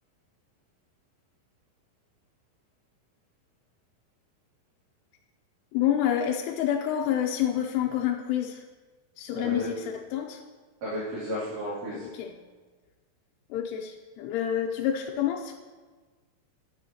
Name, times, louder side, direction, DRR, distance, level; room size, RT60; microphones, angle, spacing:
voice 1, 5.7-8.6 9.2-10.4 11.9-12.3 13.5-15.6, left 10 dB, 90° left, 1 dB, 2.7 m, -28 dB
voice 2, 9.3-9.7 10.8-12.0, equal, 55° right, -10 dB, 4.0 m, -33 dB
12.5 x 9.7 x 2.8 m, 1.4 s
omnidirectional pair, 4.5 m